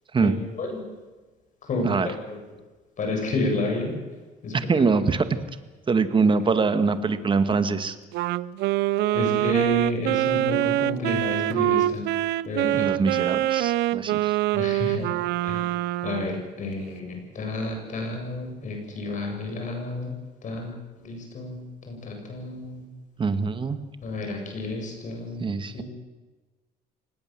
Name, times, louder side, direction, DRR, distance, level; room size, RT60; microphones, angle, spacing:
voice 1, 0.2-0.8 1.7-2.4 3.0-3.9 4.4-4.6 9.1-12.1 12.5-12.9 14.5-15.1 15.4-15.7 16.0-20.2 20.4-21.6 21.9-22.8 24.0-25.4 25.7-25.8, left 2 dB, 45° left, 3 dB, 8.0 m, -30 dB
voice 2, 4.5-5.3 5.9-8.0 12.7-14.4 23.2-23.8 25.4-25.8, right 4 dB, 30° right, 11 dB, 1.9 m, -23 dB
Wind instrument woodwind instrument, 8.1-16.4, right 14 dB, 80° right, 0.6 m, -25 dB
25.0 x 19.5 x 7.7 m, 1.3 s
cardioid pair, 110°, 17 cm